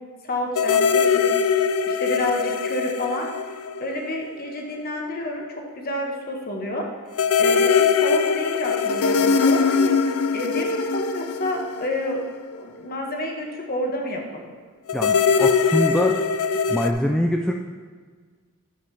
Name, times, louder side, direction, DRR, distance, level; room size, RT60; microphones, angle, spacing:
voice 1, 0.2-1.3 1.8-3.3 3.8-6.9 7.4-9.9 10.3-12.2 12.6-14.5, left 1 dB, 40° left, 1 dB, 1.3 m, -29 dB
sound 1, 0.5-4.3 4.6-4.7 7.1-12.6 14.9-16.9, left 5 dB, 75° left, 0.4 m, -21 dB
voice 2, 14.9-16.2 16.7-17.5, equal, 5° left, 1 dB, 0.3 m, -23 dB
10.5 x 7.4 x 3.3 m, 1.5 s
head